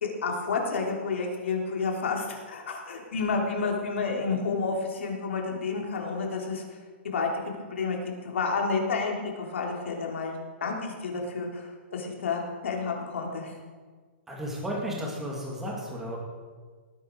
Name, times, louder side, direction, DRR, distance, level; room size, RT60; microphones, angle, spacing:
voice 1, 0.0-6.6 7.0-7.3 7.7-10.4 10.6-13.5, left 4 dB, 90° left, 0 dB, 3.4 m, -30 dB
voice 2, 14.3-16.2, equal, 5° right, -3 dB, 2.2 m, -33 dB
19.0 x 9.6 x 4.7 m, 1.5 s
hypercardioid pair, 175°, 6 cm